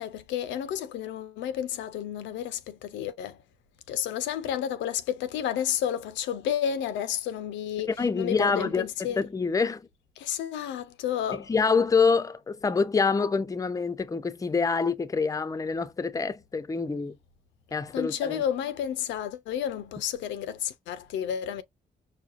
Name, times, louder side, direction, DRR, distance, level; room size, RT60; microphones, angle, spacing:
voice 1, 0.0-3.4 3.9-7.9 8.2-9.2 10.2-11.5 17.9-21.6, left 9 dB, 80° left, 0.5 m, -31 dB
voice 2, 8.0-9.8 11.3-17.1 17.7-18.4, left 5 dB, 20° left, 0.5 m, -26 dB
4.8 x 2.2 x 2.5 m
supercardioid pair, 50°, 19 cm